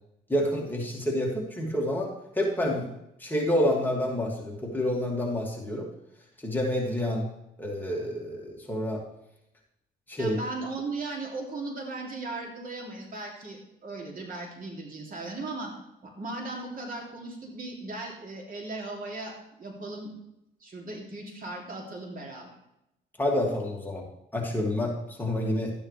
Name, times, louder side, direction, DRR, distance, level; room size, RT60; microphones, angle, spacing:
voice 1, 0.3-2.9 3.2-5.9 6.4-7.3 7.6-9.0 10.1-10.4 23.2-24.0 24.3-25.7, left 1 dB, 10° left, -2 dB, 2.5 m, -28 dB
voice 2, 10.2-15.7 16.0-20.1 20.6-22.6, right 2 dB, 45° right, 0 dB, 2.9 m, -37 dB
12.5 x 9.5 x 3.4 m, 0.83 s
cardioid pair, 90°, 20 cm